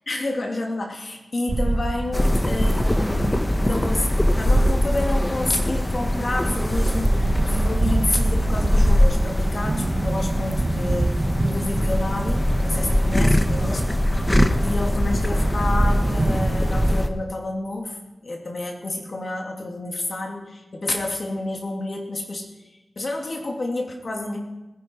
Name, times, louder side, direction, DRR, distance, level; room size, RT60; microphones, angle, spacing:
voice 1, 0.1-18.0 18.2-22.5 23.0-24.4, left 2 dB, 60° left, 1 dB, 2.9 m, -29 dB
sound 1, 1.5-16.9, right 2 dB, 45° right, 0.8 m, -27 dB
sound 2, 2.1-17.1, left 1 dB, 20° left, 1.2 m, -22 dB
20.5 x 10.5 x 4.8 m, 1.0 s
cardioid pair, 45°, 0 cm